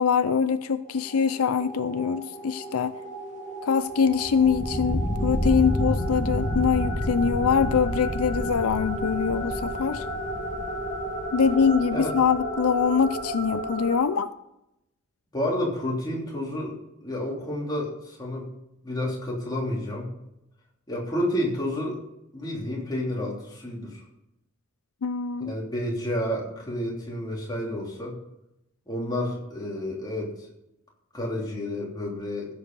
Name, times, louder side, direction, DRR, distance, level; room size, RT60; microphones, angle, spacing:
voice 1, 0.0-3.0 3.6-10.0 11.3-14.3 25.0-25.5, left 6 dB, 80° left, 12 dB, 0.5 m, -24 dB
sound 1, 0.9-14.0, equal, 35° left, 2.0 m, -30 dB
voice 2, 15.3-16.8 17.0-18.5 18.8-20.1 20.9-22.0 22.3-24.0 25.4-28.1 28.9-30.3 31.1-32.5, left 1 dB, 20° left, -3 dB, 3.2 m, -30 dB
15.5 x 7.7 x 5.4 m, 0.86 s
head